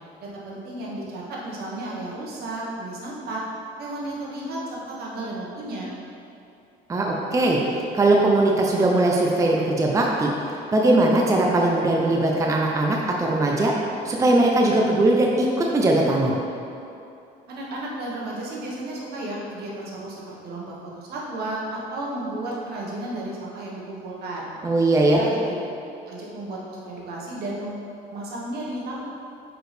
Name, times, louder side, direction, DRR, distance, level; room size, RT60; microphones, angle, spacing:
voice 1, 0.2-3.4 3.8-5.9 17.5-24.5 25.0-25.6 26.1-29.0, right 1 dB, 70° right, -4 dB, 1.3 m, -33 dB
voice 2, 6.9-10.3 10.7-13.7 14.0-16.3 24.6-25.2, right 2 dB, 20° right, -1 dB, 0.6 m, -20 dB
6.1 x 4.8 x 3.3 m, 2.7 s
cardioid pair, 110°, 17 cm